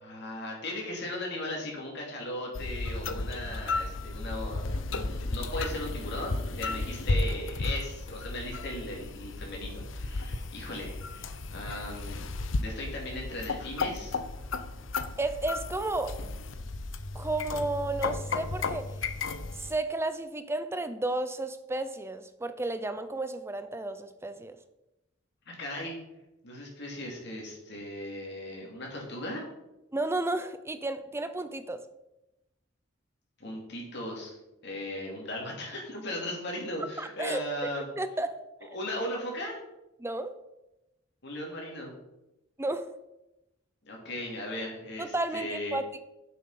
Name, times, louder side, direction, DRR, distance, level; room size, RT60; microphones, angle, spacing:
voice 1, 0.0-12.2 12.6-14.1 25.5-25.9 26.4-29.5 33.4-34.3 34.6-37.9 38.7-39.6 41.2-41.9 43.8-45.8, left 1 dB, 60° left, -1 dB, 2.9 m, -37 dB
sound 1, 2.5-19.7, left 3 dB, 85° left, 0.8 m, -34 dB
voice 2, 15.2-16.2 17.1-18.9 19.6-24.6 29.9-31.8 37.0-37.4 38.0-38.7 40.0-40.3 42.6-42.9 45.0-46.0, right 2 dB, 15° right, 11 dB, 0.6 m, -32 dB
9.9 x 7.8 x 5.7 m, 0.93 s
head